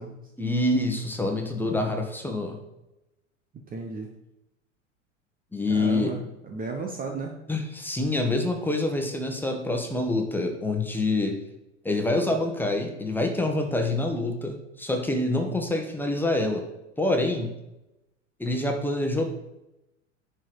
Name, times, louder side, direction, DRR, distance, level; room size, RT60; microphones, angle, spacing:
voice 1, 0.4-2.6 5.5-6.1 7.5-11.4 11.8-16.6 17.0-17.5 18.4-19.3, left 2 dB, 5° left, 3 dB, 1.5 m, -26 dB
voice 2, 3.7-4.1 5.7-7.3, right 3 dB, 20° right, 3 dB, 1.1 m, -34 dB
10.5 x 4.6 x 4.9 m, 0.94 s
figure-of-eight pair, 85°, 38 cm